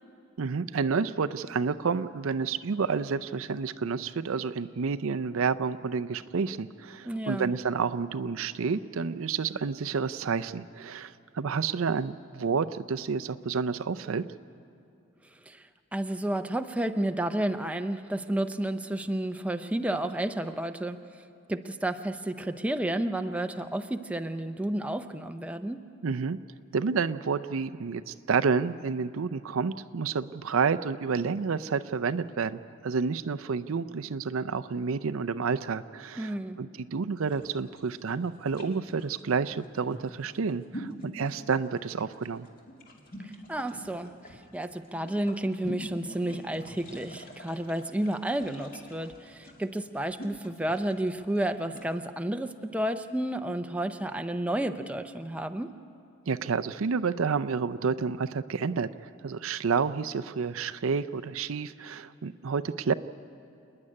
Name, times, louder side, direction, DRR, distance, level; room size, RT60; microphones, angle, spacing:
voice 1, 0.4-14.2 26.0-26.4 26.7-42.5 56.3-62.9, right 5 dB, 70° right, 12 dB, 0.5 m, -30 dB
voice 2, 7.0-7.5 15.3-21.0 21.5-25.8 36.2-36.6 43.2-55.7, right 1 dB, 5° right, 7 dB, 0.5 m, -31 dB
sound 1, 37.2-51.9, equal, 40° left, 2.3 m, -46 dB
28.0 x 9.8 x 9.9 m, 2.6 s
head